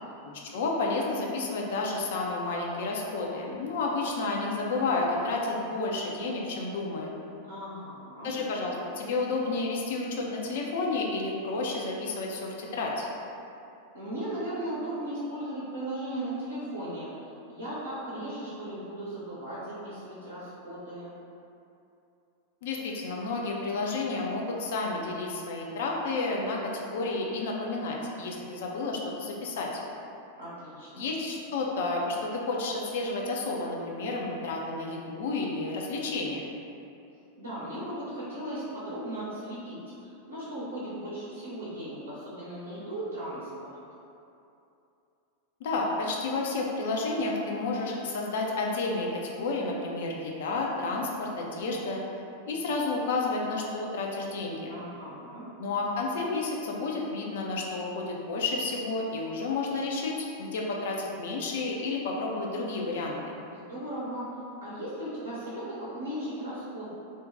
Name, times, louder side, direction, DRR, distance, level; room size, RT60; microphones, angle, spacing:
voice 1, 0.2-7.1 8.2-13.1 22.6-29.7 31.0-36.4 45.6-52.0 52.5-54.8 55.6-63.4, left 3 dB, 55° left, -1 dB, 0.4 m, -31 dB
voice 2, 7.5-8.4 13.9-21.1 30.4-31.0 37.4-43.8 54.7-55.5 63.5-66.9, right 1 dB, 80° right, -10 dB, 0.6 m, -37 dB
2.5 x 2.1 x 3.5 m, 2.7 s
figure-of-eight pair, 90°, 0 cm